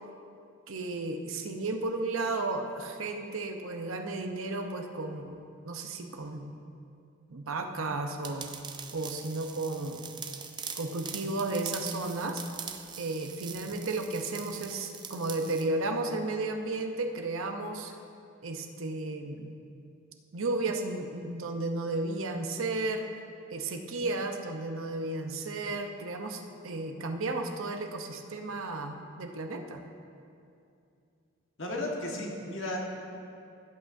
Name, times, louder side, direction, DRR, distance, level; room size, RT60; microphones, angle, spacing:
voice 1, 0.7-6.5 7.3-8.5 8.9-10.2 10.7-12.4 13.0-17.9 18.4-19.6 20.3-23.2 23.5-29.8, right 2 dB, 75° right, 5 dB, 0.8 m, -33 dB
sound 1, 8.2-15.7, right 7 dB, 20° right, 0.4 m, -42 dB
voice 2, 31.6-32.8, left 1 dB, 65° left, -1 dB, 1.5 m, -34 dB
16.5 x 8.5 x 2.7 m, 2.5 s
head